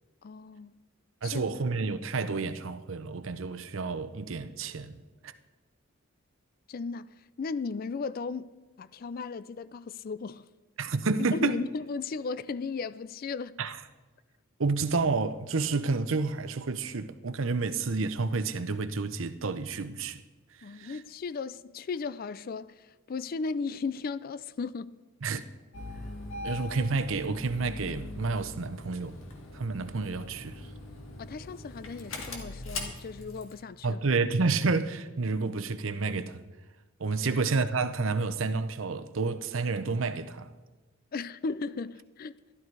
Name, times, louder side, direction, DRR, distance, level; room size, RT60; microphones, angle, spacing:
voice 1, 0.2-0.8 1.2-1.6 6.7-7.1 7.4-8.5 8.8-10.4 11.3-13.6 20.6-25.0 31.2-34.0 37.2-37.3 41.1-42.3, left 4 dB, 45° left, 0.4 m, -36 dB
voice 2, 1.2-5.0 5.2-5.3 10.8-11.6 13.6-13.8 14.6-20.2 20.7-21.0 25.2-25.4 26.4-29.2 29.5-30.7 33.8-36.4 37.0-40.5, right 4 dB, 70° right, 0.7 m, -30 dB
Engine starting, 25.7-33.6, left 2 dB, 70° left, 1.9 m, -41 dB
12.5 x 12.0 x 4.6 m
head